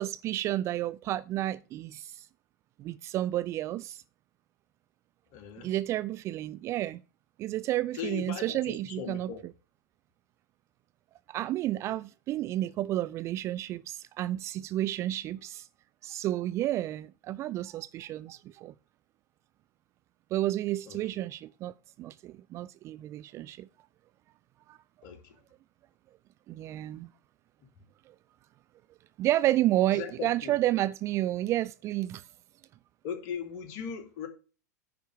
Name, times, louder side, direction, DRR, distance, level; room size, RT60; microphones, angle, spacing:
voice 1, 0.0-2.3 2.8-4.0 5.6-7.0 7.4-9.3 11.3-15.7 16.0-18.7 20.3-23.7 24.7-24.8 26.5-27.1 29.2-32.2, right 14 dB, 30° right, 0.4 m, -31 dB
voice 2, 5.3-5.7 8.0-9.4 20.9-21.0 25.0-25.4 29.9-30.5 33.0-34.3, left 7 dB, 45° left, 2.5 m, -38 dB
9.9 x 4.6 x 6.8 m
figure-of-eight pair, 95°, 9 cm